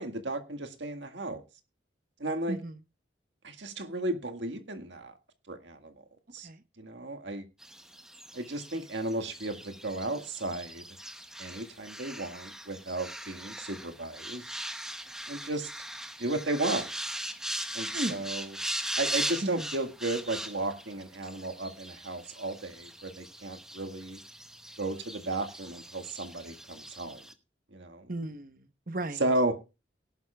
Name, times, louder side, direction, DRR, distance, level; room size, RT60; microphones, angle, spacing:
voice 1, 0.0-1.4 2.2-2.6 3.4-5.2 5.5-5.9 6.3-6.5 6.8-7.4 8.3-10.9 11.4-14.6 15.3-15.7 16.2-16.9 17.7-18.6 19.0-24.2 24.8-27.2 27.7-28.1 29.2-29.6, right 2 dB, 70° right, 1.8 m, -34 dB
sound 1, 7.6-27.3, right 1 dB, 5° right, 0.8 m, -40 dB
voice 2, 28.1-29.2, right 1 dB, 45° right, 1.0 m, -35 dB
19.0 x 11.0 x 2.3 m
head